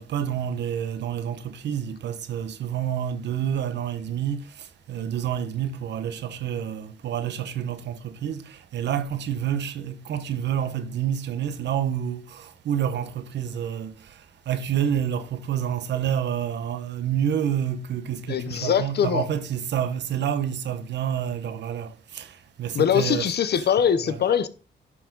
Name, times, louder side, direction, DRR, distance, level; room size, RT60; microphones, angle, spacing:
voice 1, 0.0-23.3 24.0-24.2, right 9 dB, 80° right, 0.9 m, -28 dB
voice 2, 18.3-19.3 22.7-24.5, left 8 dB, 65° left, 0.9 m, -22 dB
11.0 x 5.9 x 3.9 m
cardioid pair, 70°, 18 cm